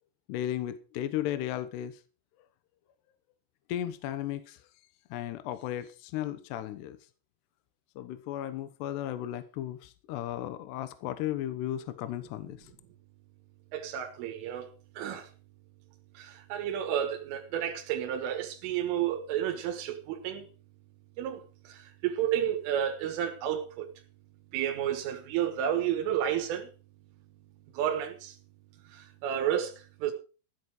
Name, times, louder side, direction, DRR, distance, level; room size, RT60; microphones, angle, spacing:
voice 1, 0.3-2.0 3.7-4.6 5.1-7.0 8.0-12.7, left 12 dB, 70° left, 2.9 m, -35 dB
voice 2, 13.7-15.3 16.2-20.5 21.2-23.9 24.5-26.7 27.7-28.4 28.9-30.1, right 10 dB, 90° right, 3.9 m, -31 dB
15.0 x 9.2 x 4.8 m
omnidirectional pair, 5.6 m